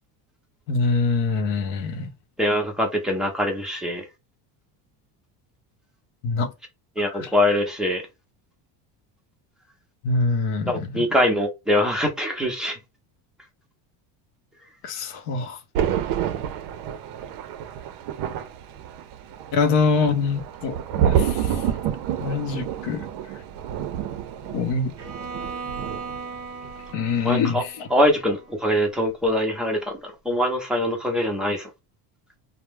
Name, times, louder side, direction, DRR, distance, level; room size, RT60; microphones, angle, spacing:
voice 1, 0.7-2.1 6.2-6.5 7.0-7.3 10.0-11.0 14.8-15.6 19.5-20.8 21.1-21.7 22.2-23.1 24.5-24.9 26.9-27.9, left 4 dB, 65° left, 0.7 m, -24 dB
voice 2, 2.4-4.1 7.0-8.0 10.7-12.8 27.2-27.6 27.9-31.7, left 1 dB, ahead, 0.4 m, -23 dB
Thunder, 15.7-26.3 26.6-26.9, right 9 dB, 55° right, 0.5 m, -28 dB
Bowed string instrument, 25.0-29.0, right 4 dB, 30° right, 0.8 m, -38 dB
2.2 x 2.0 x 3.1 m
cardioid pair, 140°, 48 cm